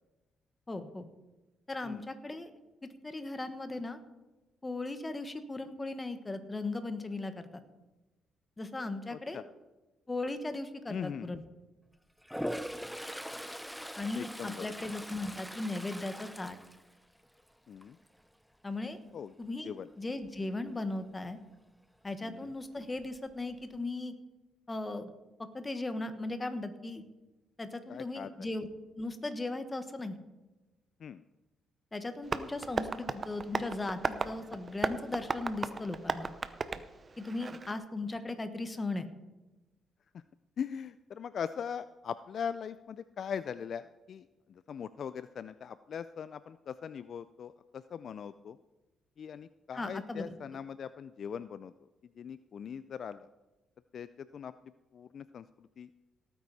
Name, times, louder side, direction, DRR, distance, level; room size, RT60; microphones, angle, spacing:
voice 1, 0.7-1.1 1.7-2.5 3.0-4.0 4.6-7.5 8.6-9.4 10.1-11.4 14.0-16.6 18.6-19.0 19.4-21.4 22.0-24.1 24.7-25.1 25.5-27.0 27.6-28.7 29.0-30.2 31.9-36.3 37.2-39.1 49.7-50.3, left 2 dB, 20° left, 9 dB, 1.4 m, -37 dB
voice 2, 9.1-9.4 10.9-11.4 14.2-14.7 17.7-18.0 19.1-19.3 19.6-19.9 22.2-22.5 27.9-28.3 31.0-31.2 40.6-48.6 49.2-51.7 52.2-53.3 53.9-54.5 54.9-55.9, left 7 dB, 55° left, 14 dB, 0.4 m, -41 dB
Toilet flush, 12.2-17.4 17.8-18.2 22.6-22.7 23.0-23.8, equal, ahead, 0.6 m, -41 dB
Tap, 32.2-37.7, right 4 dB, 35° right, 0.7 m, -36 dB
18.0 x 9.2 x 4.2 m, 1.1 s
cardioid pair, 90°, 0 cm